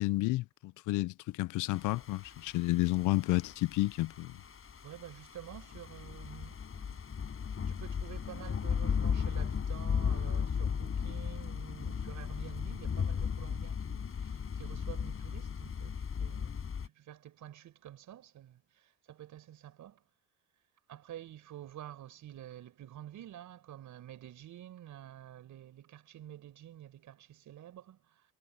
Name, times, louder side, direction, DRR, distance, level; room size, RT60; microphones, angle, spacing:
voice 1, 0.0-4.3, left 18 dB, 90° left, 0.5 m, -31 dB
sound 1, 1.8-16.9, left 6 dB, 45° left, 6.9 m, -36 dB
voice 2, 4.8-7.0 7.7-16.6 16.8-20.0 20.9-28.2, right 12 dB, 75° right, 6.1 m, -49 dB
cardioid pair, 90°, 30 cm